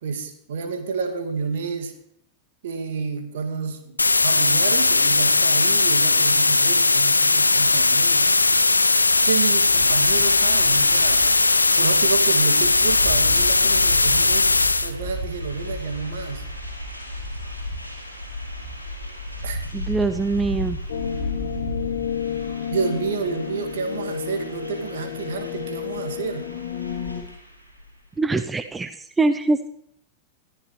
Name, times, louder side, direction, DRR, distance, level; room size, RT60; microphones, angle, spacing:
voice 1, 0.0-1.9 2.6-8.3 9.2-11.3 11.8-16.5 19.4-19.6 22.7-26.5, right 5 dB, 60° right, 5 dB, 2.3 m, -29 dB
sound 1, 4.0-14.9, left 3 dB, 80° left, 0.6 m, -18 dB
sound 2, 9.6-28.0, left 1 dB, 90° right, 3.0 m, -34 dB
voice 2, 19.7-20.8 28.2-28.9 29.2-29.7, right 3 dB, 10° right, 11 dB, 0.6 m, -23 dB
sound 3, 20.9-27.2, left 9 dB, 60° left, 2.2 m, -31 dB
21.5 x 13.5 x 3.3 m, 0.70 s
figure-of-eight pair, 90°, 0 cm